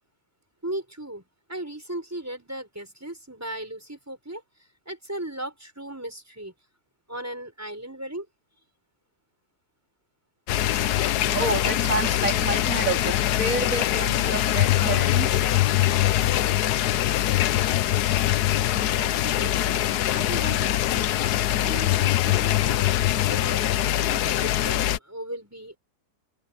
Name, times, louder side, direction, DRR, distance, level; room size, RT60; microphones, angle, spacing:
voice 1, 0.6-1.2 1.5-4.4 4.9-6.5 7.1-8.3 19.0-19.8 20.1-21.3 21.6-23.6 24.0-25.8, right 1 dB, 10° right, 6.1 m, -37 dB
sound 1, 10.5-25.0, left 13 dB, 80° left, 1.2 m, -23 dB
voice 2, 11.1-15.6, right 3 dB, 55° right, 3.3 m, -29 dB
open air
omnidirectional pair, 1.7 m